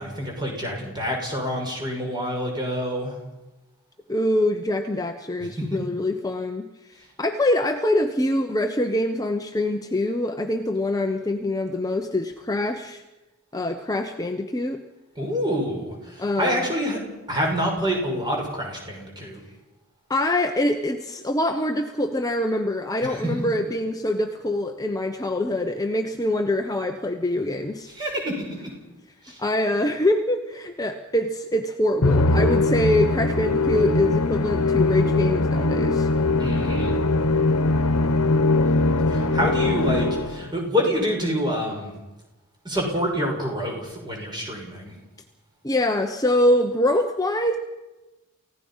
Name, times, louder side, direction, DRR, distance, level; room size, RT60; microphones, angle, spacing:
voice 1, 0.0-3.2 5.6-5.7 15.2-17.0 17.3-19.4 23.0-23.3 27.9-28.7 29.2-29.4 36.4-36.9 39.1-41.9 42.6-44.9, equal, 20° right, 0 dB, 6.0 m, -27 dB
voice 2, 4.1-6.7 6.9-13.0 13.5-14.8 16.2-16.6 20.1-27.9 29.4-36.1 45.6-47.6, left 1 dB, 15° left, 5 dB, 0.9 m, -24 dB
Musical instrument, 32.0-40.5, left 2 dB, 80° left, 1.2 m, -21 dB
29.0 x 16.5 x 5.7 m, 1.1 s
head